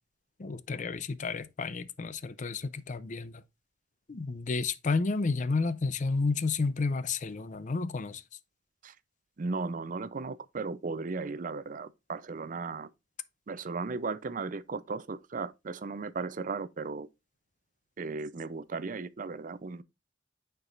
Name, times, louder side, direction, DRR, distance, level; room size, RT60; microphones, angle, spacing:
voice 1, 0.4-3.4 4.1-8.2, left 4 dB, 45° left, 0.5 m, -31 dB
voice 2, 9.4-12.9 13.5-17.1 18.0-19.8, right 4 dB, 45° right, 0.5 m, -36 dB
9.6 x 4.6 x 2.5 m
head